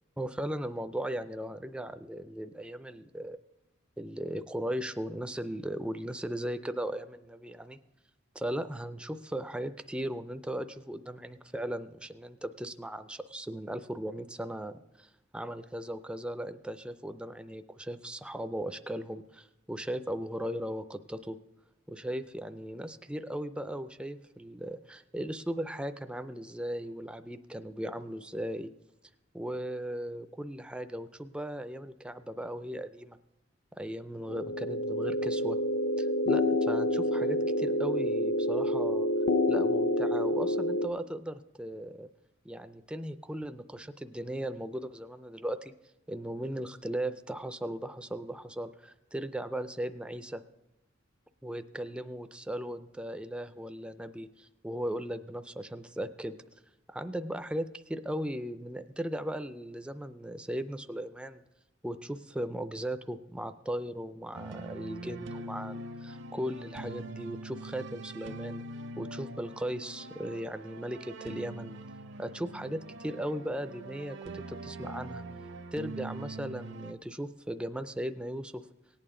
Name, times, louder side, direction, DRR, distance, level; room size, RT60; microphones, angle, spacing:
voice 1, 0.2-3.4 4.0-7.8 8.3-15.1 15.3-21.4 21.9-28.7 29.3-33.2 33.7-35.6 36.0-39.1 39.5-42.1 42.4-45.7 46.1-50.4 51.4-56.4 56.9-61.4 61.8-68.6 69.0-71.8 72.2-75.2 75.7-78.7, right 1 dB, 5° right, 10 dB, 0.3 m, -37 dB
sound 1, 34.3-40.9, left 1 dB, 50° left, 0.5 m, -28 dB
sound 2, 64.3-76.9, right 2 dB, 65° right, 0.6 m, -43 dB
18.0 x 8.8 x 3.7 m, 0.89 s
head